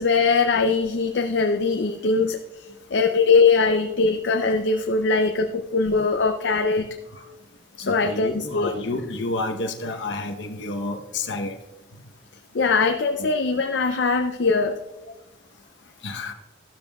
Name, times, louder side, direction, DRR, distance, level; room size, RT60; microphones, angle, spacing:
voice 1, 0.0-6.9 7.8-8.7 12.5-14.8, left 4 dB, 70° left, 5 dB, 0.5 m, -21 dB
voice 2, 7.8-11.6 13.2-13.3 16.0-16.3, left 2 dB, 90° left, 4 dB, 0.9 m, -30 dB
13.5 x 12.5 x 2.3 m, 1.0 s
head